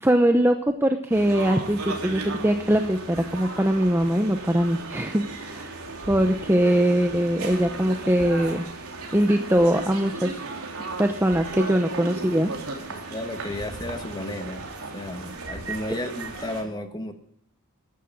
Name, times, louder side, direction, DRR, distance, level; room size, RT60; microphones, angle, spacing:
voice 1, 0.0-5.7 6.1-8.7 9.1-10.3 11.0-12.5 12.8-13.1, right 1 dB, 10° right, 6 dB, 0.8 m, -22 dB
sound 1, 1.1-16.6, right 3 dB, 85° right, 3.3 m, -36 dB
voice 2, 12.9-14.6 14.9-17.1, left 1 dB, 20° left, 7 dB, 1.4 m, -33 dB
14.0 x 11.5 x 6.0 m, 0.64 s
head